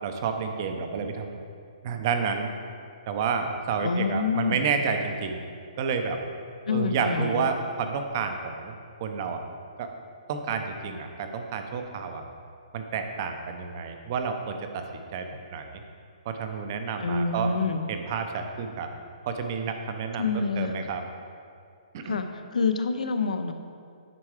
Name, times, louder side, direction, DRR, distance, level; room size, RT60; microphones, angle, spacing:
voice 1, 0.0-1.4 1.8-2.5 3.1-5.4 5.8-6.2 6.7-9.4 9.8-9.9 10.3-12.2 12.7-15.8 16.3-17.5 17.9-18.9 19.2-21.0 21.9-22.2, right 6 dB, 30° right, 5 dB, 0.6 m, -30 dB
voice 2, 3.8-4.7 6.7-7.5 17.0-17.9 20.2-20.9 22.0-23.5, left 4 dB, 85° left, 8 dB, 0.7 m, -27 dB
9.8 x 4.6 x 4.8 m, 2.3 s
hypercardioid pair, 170°, 4 cm